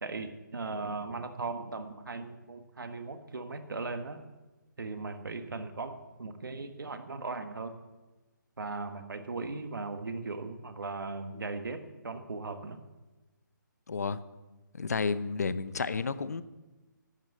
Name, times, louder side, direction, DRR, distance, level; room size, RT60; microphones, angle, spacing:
voice 1, 0.0-4.2 4.8-7.7 8.6-12.8, right 3 dB, 80° right, 8 dB, 1.6 m, -38 dB
voice 2, 13.9-14.2 14.7-16.4, left 4 dB, 50° left, 14 dB, 0.7 m, -31 dB
11.5 x 9.6 x 7.9 m, 1.2 s
hypercardioid pair, 180°, 11 cm